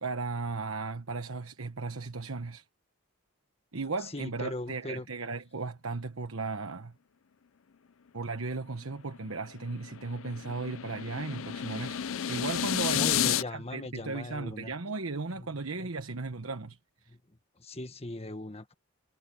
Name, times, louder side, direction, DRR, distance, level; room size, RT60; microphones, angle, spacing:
voice 1, 0.0-2.6 3.7-6.9 8.1-12.0 12.3-16.8, right 3 dB, 75° right, 1.2 m, -36 dB
voice 2, 4.0-5.1 12.9-14.7 15.3-16.2 17.1-18.7, left 2 dB, 30° left, 1.4 m, -40 dB
sound 1, 9.1-13.4, left 10 dB, 70° left, 0.5 m, -31 dB
head